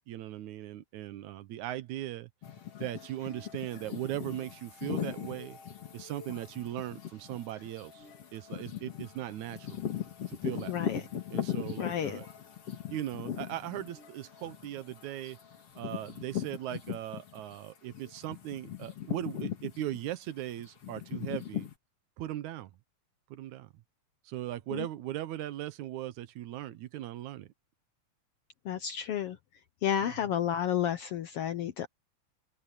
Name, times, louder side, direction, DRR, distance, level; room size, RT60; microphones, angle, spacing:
voice 1, 0.1-2.3 2.8-5.6 5.9-8.0 8.3-9.8 10.3-12.3 12.9-15.4 15.8-21.7 22.2-22.7 23.3-23.7 24.3-27.5 30.0-30.1, right 13 dB, 75° right, 2.2 m, -39 dB
Ambience Wind, 2.4-17.6 17.9-21.7, left 10 dB, 50° left, 3.3 m, -39 dB
voice 2, 10.7-11.0 11.8-12.2 24.7-24.9 28.6-29.4 29.8-31.9, left 9 dB, 70° left, 1.4 m, -31 dB
open air
omnidirectional pair, 3.5 m